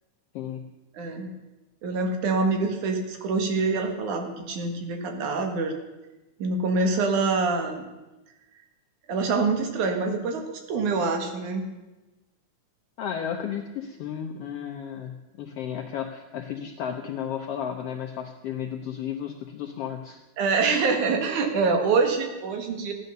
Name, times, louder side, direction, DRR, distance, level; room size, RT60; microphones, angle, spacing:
voice 1, 0.3-0.7 13.0-20.2, left 8 dB, 65° left, 3 dB, 1.7 m, -33 dB
voice 2, 0.9-1.3 1.8-5.7 6.4-7.9 9.1-11.6 20.4-22.9, right 4 dB, 80° right, 5 dB, 3.1 m, -25 dB
15.0 x 11.0 x 6.7 m, 1.1 s
omnidirectional pair, 3.4 m